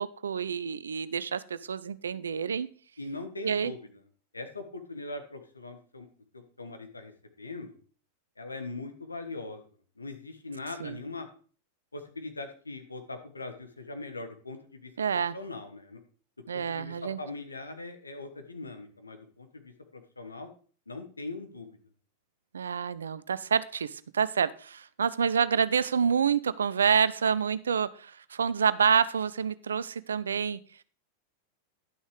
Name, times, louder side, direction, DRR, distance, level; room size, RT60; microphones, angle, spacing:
voice 1, 0.0-2.7 3.4-3.7 10.8-11.0 15.0-15.3 16.5-17.2 22.5-30.6, right 7 dB, 70° right, 17 dB, 0.5 m, -28 dB
voice 2, 3.0-3.8 4.3-6.1 6.3-7.1 7.4-7.8 8.4-9.6 10.0-11.3 11.9-14.9 15.3-16.0 16.5-20.5 20.9-21.7, left 3 dB, 80° left, 6 dB, 1.5 m, -41 dB
11.0 x 6.3 x 5.0 m, 0.41 s
figure-of-eight pair, 90°, 0 cm